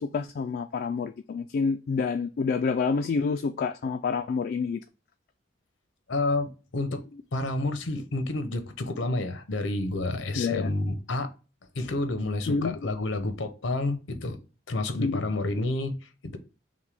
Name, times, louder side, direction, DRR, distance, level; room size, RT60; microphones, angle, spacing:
voice 1, 0.0-4.8 10.3-10.7 12.5-12.8 15.0-15.2, left 5 dB, 55° left, 0.3 m, -28 dB
voice 2, 6.1-7.0 7.3-11.3 11.8-14.4 14.7-15.9 16.2-16.4, left 2 dB, 85° left, 0.8 m, -29 dB
6.0 x 2.2 x 3.3 m
head